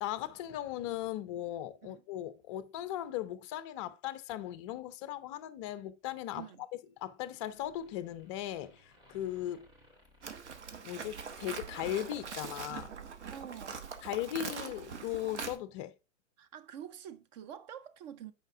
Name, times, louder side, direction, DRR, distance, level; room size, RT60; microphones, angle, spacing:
voice 1, 0.0-6.4 7.0-9.7 10.8-12.9 14.0-15.9, left 12 dB, 25° left, 0.5 m, -38 dB
sound 1, 6.6-7.2 7.4-11.9, left 1 dB, 10° right, 2.0 m, -64 dB
Livestock farm animals working animals, 10.2-15.6, right 6 dB, 65° right, 1.2 m, -43 dB
voice 2, 13.3-13.8 16.4-18.3, right 9 dB, 35° right, 0.7 m, -47 dB
8.9 x 4.9 x 3.6 m
figure-of-eight pair, 110°, 37 cm